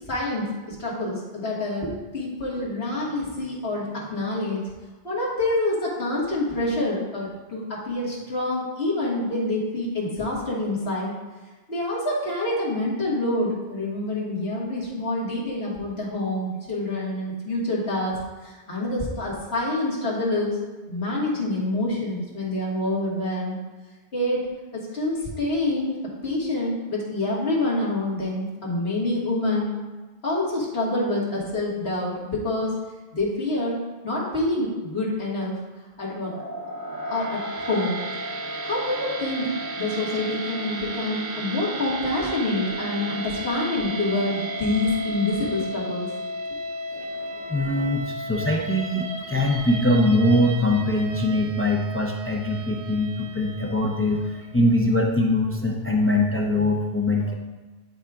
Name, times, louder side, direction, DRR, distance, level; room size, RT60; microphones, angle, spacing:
voice 1, 0.1-4.7 5.0-11.1 11.7-20.6 20.9-23.6 24.1-24.5 24.7-29.7 30.2-32.7 33.1-33.8 34.0-35.6 36.0-36.4 37.1-38.0 38.6-46.1, left 2 dB, 75° left, -5 dB, 2.0 m, -27 dB
sound 1, 36.2-54.5, right 1 dB, 60° right, 0.9 m, -34 dB
voice 2, 47.5-57.3, left 1 dB, 20° left, 0 dB, 0.4 m, -22 dB
10.5 x 4.9 x 2.3 m, 1.2 s
omnidirectional pair, 1.0 m